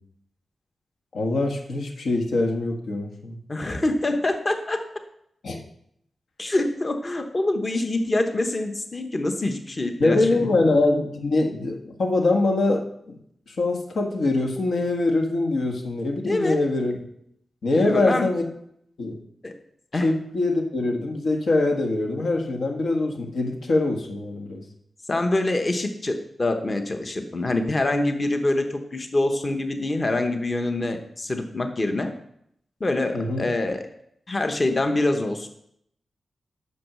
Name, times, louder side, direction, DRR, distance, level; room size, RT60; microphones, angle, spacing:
voice 1, 1.1-3.4 5.4-5.6 10.0-13.2 13.5-17.0 17.6-18.4 19.0-19.2 20.0-24.6 33.1-33.5, left 2 dB, 75° left, 2 dB, 1.6 m, -23 dB
voice 2, 3.5-4.8 6.4-10.7 16.3-16.6 17.7-18.3 19.4-19.5 19.9-20.1 25.1-32.1 32.8-33.8 34.3-35.5, left 2 dB, 30° left, 6 dB, 1.0 m, -25 dB
8.5 x 6.4 x 6.2 m, 0.72 s
wide cardioid pair, 130°, 0 cm